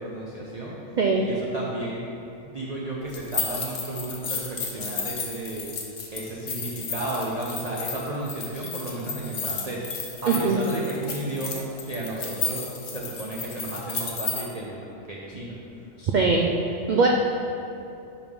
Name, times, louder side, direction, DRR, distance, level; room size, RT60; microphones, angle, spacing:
voice 1, 0.0-0.8 1.2-2.0 2.4-5.7 6.1-9.8 10.2-14.8 15.1-15.6, right 2 dB, 40° right, -5 dB, 0.6 m, -33 dB
sound 1, 3.1-14.4, left 5 dB, 55° left, 1.0 m, -33 dB
voice 2, 10.3-10.6 16.0-16.5 16.9-17.1, right 4 dB, 85° right, 0 dB, 0.4 m, -21 dB
5.4 x 4.8 x 5.3 m, 2.8 s
omnidirectional pair, 1.4 m